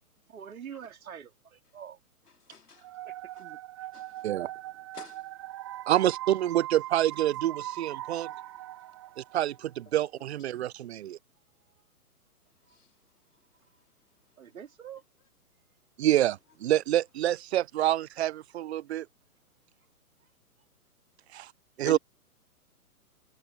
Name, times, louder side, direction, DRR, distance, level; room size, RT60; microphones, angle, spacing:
voice 1, 0.3-2.0 3.0-3.9 5.9-6.1 14.4-15.0, right 8 dB, 65° right, 4.1 m, -45 dB
voice 2, 2.5-2.9 3.4-3.5 3.9-4.3 4.9-5.3 12.7-12.9 21.9-22.0, left 5 dB, 85° left, 3.6 m, -45 dB
sound 1, 2.8-9.6, right 14 dB, 20° right, 0.5 m, -40 dB
voice 3, 5.9-8.3 9.2-11.2 16.0-19.1 21.3-21.5 21.8-22.0, right 13 dB, 45° right, 0.8 m, -27 dB
figure-of-eight pair, 125°, 45 cm